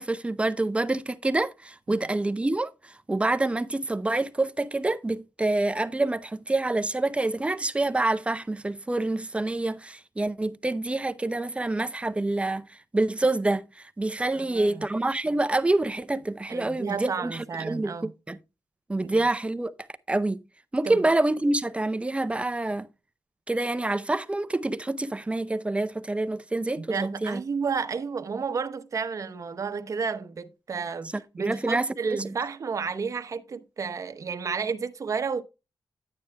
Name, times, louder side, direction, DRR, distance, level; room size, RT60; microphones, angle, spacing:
voice 1, 0.0-18.4 18.9-19.7 20.1-20.4 20.7-22.9 23.5-27.4 31.4-32.2, right 2 dB, 15° right, 0.6 m, -27 dB
voice 2, 14.3-14.9 16.5-18.1 19.0-19.2 20.8-21.0 26.8-35.4, right 5 dB, 50° right, 0.9 m, -31 dB
11.0 x 8.8 x 2.2 m
wide cardioid pair, 110°, 7 cm